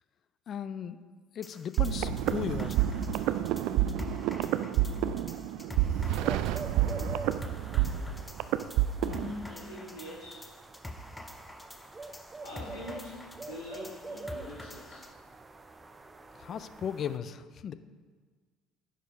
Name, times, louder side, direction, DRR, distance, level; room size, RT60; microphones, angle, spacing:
voice 1, 0.5-1.0 1.3-2.9 16.3-17.7, left 8 dB, 45° left, 13 dB, 0.4 m, -36 dB
sound 1, 1.4-15.1, left 1 dB, 10° left, 0.8 m, -47 dB
sound 2, 1.8-9.3, right 12 dB, 60° right, 0.3 m, -29 dB
sound 3, 6.1-17.2, right 2 dB, 20° right, 0.6 m, -46 dB
voice 2, 9.0-10.5 12.4-15.0, left 1 dB, 70° left, -4 dB, 1.5 m, -43 dB
9.8 x 5.0 x 5.2 m, 1.5 s
hypercardioid pair, 60°, 0 cm